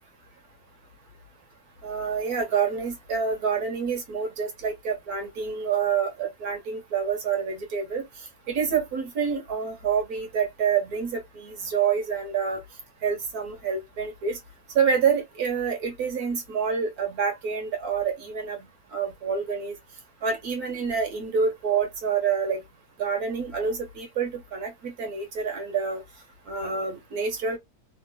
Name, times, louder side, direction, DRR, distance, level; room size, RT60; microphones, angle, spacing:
voice 1, 1.8-8.0 8.5-12.6 13.0-14.4 14.8-19.7 20.2-22.6 23.0-26.0 26.5-27.6, right 6 dB, 70° right, 1.8 m, -27 dB
3.5 x 2.9 x 2.2 m
omnidirectional pair, 1.6 m